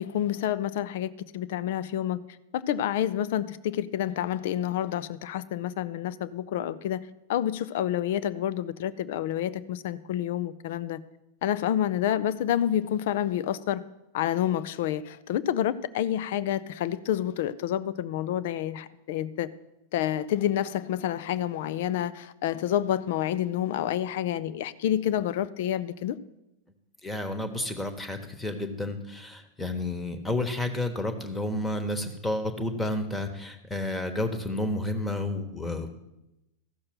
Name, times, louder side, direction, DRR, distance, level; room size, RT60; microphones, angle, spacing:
voice 1, 0.0-2.2 2.5-11.0 11.4-13.8 14.1-19.5 19.9-26.2, left 11 dB, 55° left, 16 dB, 0.5 m, -28 dB
voice 2, 27.0-35.9, left 1 dB, 10° left, 8 dB, 1.2 m, -31 dB
14.0 x 6.5 x 6.0 m, 0.91 s
figure-of-eight pair, 90°, 0 cm